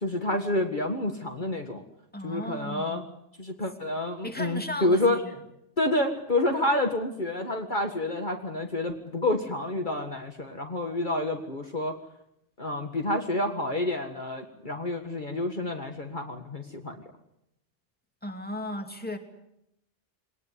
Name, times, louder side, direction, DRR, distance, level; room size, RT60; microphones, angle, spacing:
voice 1, 0.0-1.8 2.2-3.0 3.4-5.2 5.8-12.0 12.6-16.9, left 1 dB, 40° left, 4 dB, 2.0 m, -28 dB
voice 2, 2.1-3.1 4.2-5.4 18.2-19.2, left 1 dB, 10° left, 5 dB, 2.7 m, -36 dB
22.5 x 19.5 x 9.6 m, 0.81 s
omnidirectional pair, 1.2 m